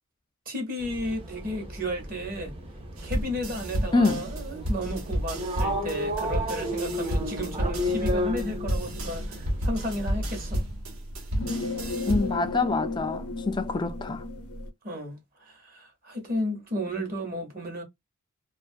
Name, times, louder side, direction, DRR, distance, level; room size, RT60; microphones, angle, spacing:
voice 1, 0.5-2.5 3.0-10.6 14.8-17.8, equal, 40° right, 0.9 m, -33 dB
sound 1, 0.8-10.6, equal, 25° right, 0.5 m, -34 dB
sound 2, 3.0-12.5, equal, 70° right, 0.9 m, -31 dB
voice 2, 3.9-4.3 12.1-14.2, left 3 dB, 20° left, 0.3 m, -26 dB
sound 3, 7.9-14.7, left 2 dB, 90° left, 0.5 m, -36 dB
2.4 x 2.3 x 2.5 m
head